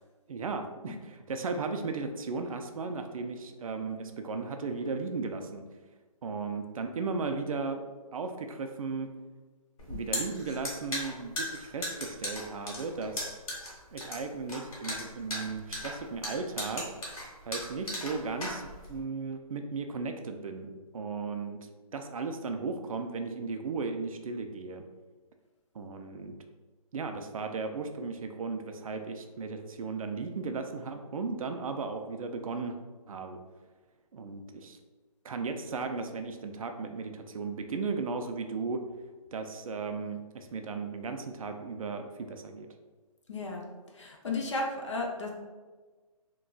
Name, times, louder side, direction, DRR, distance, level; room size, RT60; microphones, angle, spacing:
voice 1, 0.3-5.6 6.2-7.8 8.1-9.1 9.9-13.4 13.9-16.8 17.4-21.6 21.9-24.8 25.7-26.3 26.9-32.8 33.1-33.4 34.1-34.8 35.2-38.8 39.3-42.7, right 4 dB, 65° right, 6 dB, 0.4 m, -36 dB
sound 1, 9.8-19.0, left 1 dB, 65° left, 1.3 m, -37 dB
voice 2, 43.3-43.7 43.9-45.3, left 2 dB, 50° left, 0 dB, 0.6 m, -33 dB
3.8 x 2.3 x 2.2 m, 1.3 s
hypercardioid pair, 170°, 19 cm